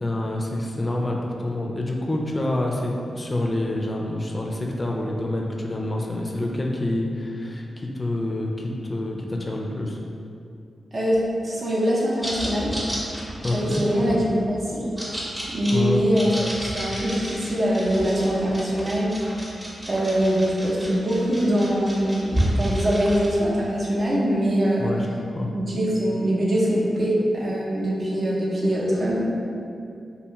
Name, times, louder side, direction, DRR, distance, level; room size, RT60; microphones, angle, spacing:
voice 1, 0.0-10.0 13.4-13.8 15.7-16.3 24.8-25.1 25.4-25.5, left 1 dB, 35° left, 0 dB, 0.4 m, -27 dB
voice 2, 10.9-12.7 13.5-14.8 15.5-16.3 16.7-19.1 19.9-24.9 25.5-29.2, equal, 55° right, -5 dB, 0.6 m, -23 dB
sound 1, 12.2-23.3, equal, 20° right, 0.8 m, -31 dB
2.5 x 2.3 x 2.8 m, 2.5 s
supercardioid pair, 45°, 0 cm